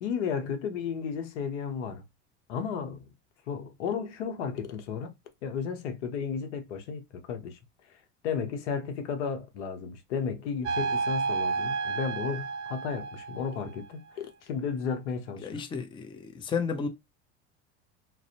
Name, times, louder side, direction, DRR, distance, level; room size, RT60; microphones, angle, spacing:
voice 1, 0.0-2.0 2.5-3.0 3.5-5.1 5.4-7.6 8.2-15.6, left 6 dB, 85° left, 0.7 m, -33 dB
sound 1, 10.6-13.8, right 4 dB, 40° right, 0.5 m, -31 dB
voice 2, 15.4-16.9, left 5 dB, 15° left, 0.4 m, -32 dB
2.4 x 2.0 x 2.7 m
supercardioid pair, 95°, 34 cm